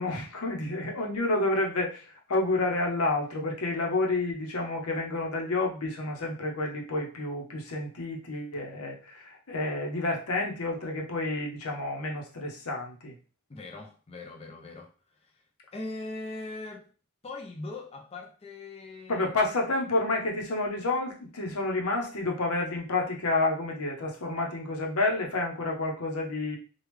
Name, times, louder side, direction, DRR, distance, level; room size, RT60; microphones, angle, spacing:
voice 1, 0.0-13.1 19.1-26.6, left 2 dB, 85° left, 0.8 m, -29 dB
voice 2, 13.5-15.4 15.7-16.9 17.2-19.3, left 2 dB, 25° left, 0.5 m, -41 dB
3.4 x 2.3 x 3.1 m
head